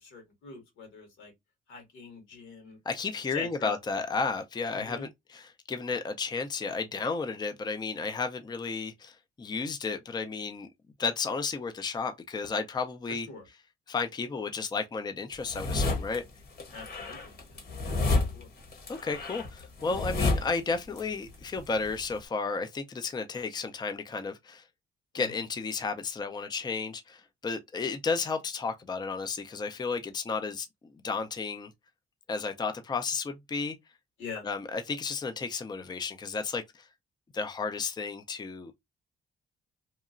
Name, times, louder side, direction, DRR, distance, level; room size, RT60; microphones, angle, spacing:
voice 1, 0.0-1.3 1.7-2.8 3.3-3.8 4.7-5.1 13.1-13.4 16.7-18.5 25.1-25.2 34.2-34.4, left 5 dB, 90° left, 1.5 m, -44 dB
voice 2, 2.9-10.7 11.0-13.3 13.9-16.2 18.9-24.6 25.1-30.7 31.0-31.7 32.3-33.8 34.4-36.8 37.3-38.7, left 4 dB, 20° left, 0.5 m, -33 dB
sound 1, 15.3-16.2 16.6-21.0 21.3-22.2, left 3 dB, 55° left, 1.0 m, -30 dB
2.9 x 2.2 x 2.4 m
cardioid pair, 90°, 20 cm